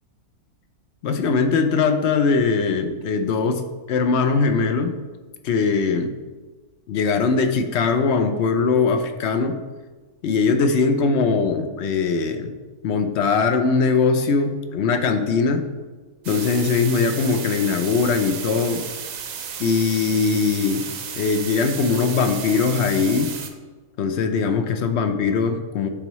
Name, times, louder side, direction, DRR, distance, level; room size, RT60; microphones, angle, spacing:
voice 1, 1.0-3.6 3.9-4.9 5.4-6.1 6.9-9.6 10.2-12.5 12.8-15.6 16.3-18.8 19.6-20.8 21.2-23.3 24.0-25.9, left 4 dB, 60° left, 7 dB, 0.8 m, -21 dB
sound 1, 16.2-23.5, right 7 dB, 65° right, 1.1 m, -33 dB
10.5 x 4.5 x 3.1 m, 1.3 s
omnidirectional pair, 1.6 m